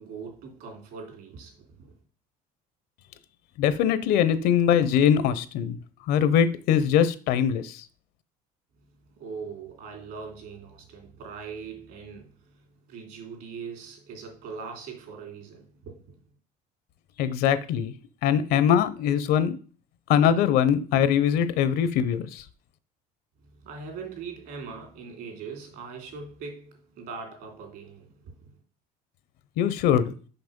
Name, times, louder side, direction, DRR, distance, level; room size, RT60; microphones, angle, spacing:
voice 1, 0.0-1.9 8.7-16.2 23.5-28.5, right 5 dB, 65° right, 3.0 m, -41 dB
voice 2, 3.6-5.8 6.1-7.9 17.2-17.9 18.2-19.6 20.1-22.4 29.6-30.1, left 9 dB, 65° left, 0.7 m, -22 dB
5.9 x 5.6 x 5.2 m
cardioid pair, 150°, 17 cm